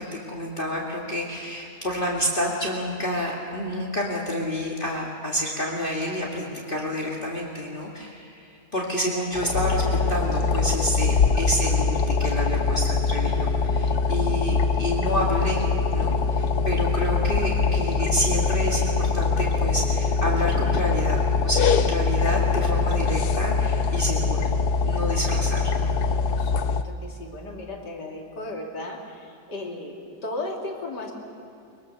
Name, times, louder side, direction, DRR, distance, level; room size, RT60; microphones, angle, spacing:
voice 1, 0.0-9.8 10.1-15.6 15.9-24.5 24.8-26.0, equal, 30° left, -3 dB, 2.3 m, -29 dB
sound 1, 9.3-26.8, left 4 dB, 70° left, 1.3 m, -23 dB
voice 2, 26.3-31.1, left 2 dB, 85° left, 0 dB, 3.4 m, -35 dB
23.0 x 22.0 x 6.7 m, 2.5 s
omnidirectional pair, 1.8 m